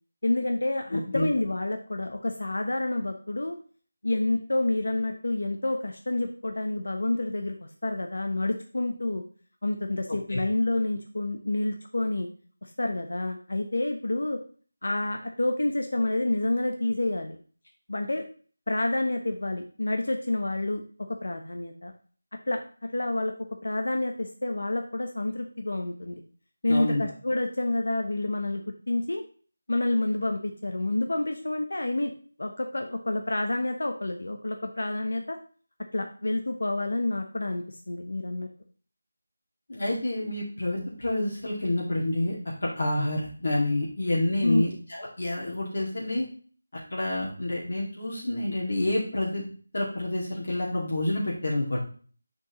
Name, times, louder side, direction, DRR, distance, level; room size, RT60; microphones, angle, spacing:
voice 1, 0.2-3.5 4.0-7.6 7.8-9.2 9.6-12.3 12.6-14.4 14.8-17.4 17.9-18.3 18.7-20.8 21.1-21.9 22.5-22.6 22.9-23.3 23.6-26.2 26.6-29.2 29.7-32.1 32.4-35.4 35.9-38.5 44.4-44.8, left 2 dB, 75° left, 4 dB, 0.9 m, -28 dB
voice 2, 0.9-1.3 10.3-10.4 26.7-27.0 39.7-42.4 42.6-46.3 46.9-49.4 49.7-51.8, left 1 dB, 55° left, -5 dB, 2.2 m, -28 dB
7.4 x 6.2 x 3.1 m, 0.43 s
figure-of-eight pair, 175°, 0 cm